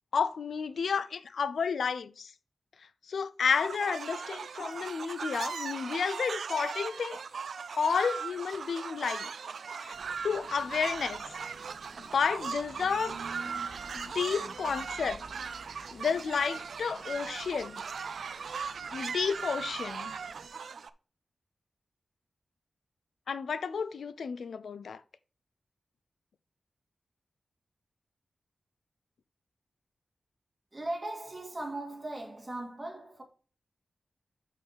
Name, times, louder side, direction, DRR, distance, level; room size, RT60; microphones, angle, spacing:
voice 1, 0.1-2.3 3.1-7.2 7.8-9.3 9.8-10.0 10.2-11.2 12.0-13.1 13.9-15.2 15.9-17.8 18.9-20.2 23.3-25.0, left 6 dB, 85° left, 0.5 m, -31 dB
sound 1, 3.5-20.9, right 6 dB, 85° right, 0.5 m, -39 dB
sound 2, 9.9-20.5, right 3 dB, 50° right, 1.6 m, -51 dB
voice 2, 30.7-33.2, right 1 dB, 20° right, 2.6 m, -38 dB
6.4 x 5.6 x 4.9 m
wide cardioid pair, 90°, 0 cm